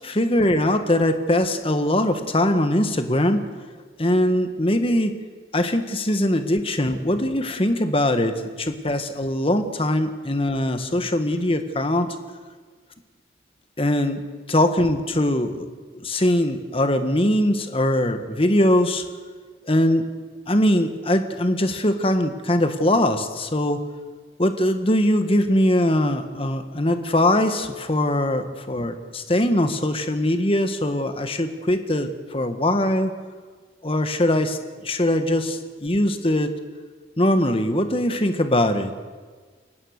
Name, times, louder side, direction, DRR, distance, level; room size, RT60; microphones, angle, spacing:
voice 1, 0.0-3.4 4.0-5.1 5.5-12.1 13.8-14.2 14.5-15.7 15.9-19.0 19.7-20.0 20.5-23.8 24.4-33.1 33.8-34.6 34.8-36.5 37.2-38.9, left 1 dB, 30° left, 8 dB, 1.5 m, -21 dB
29.5 x 17.0 x 6.7 m, 1.5 s
head